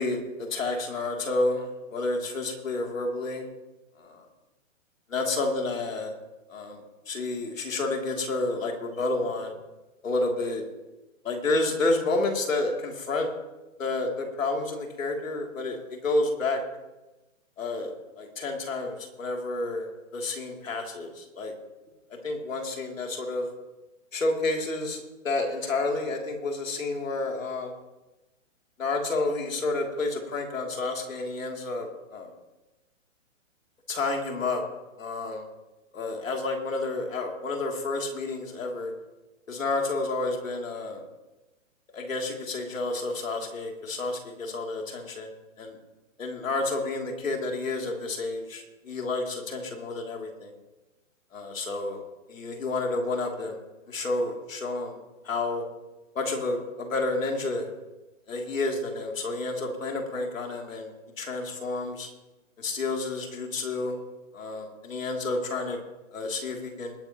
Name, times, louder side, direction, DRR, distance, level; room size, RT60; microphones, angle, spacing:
voice 1, 0.0-3.5 4.0-4.3 5.1-6.1 6.5-9.5 10.0-10.6 11.2-13.3 13.8-16.6 17.6-17.9 18.2-19.9 20.1-21.5 22.2-23.5 24.1-27.7 28.8-32.3 33.9-34.6 35.0-35.5 35.9-38.9 39.5-41.0 41.9-45.8 46.2-50.5 51.3-52.0 52.3-53.6 53.9-55.0 55.2-55.6 56.1-57.7 58.3-62.1 62.6-64.0 64.3-65.8 66.1-66.9, left 2 dB, 80° left, 1 dB, 3.0 m, -30 dB
21.0 x 9.7 x 3.0 m, 1.1 s
hypercardioid pair, 150°, 39 cm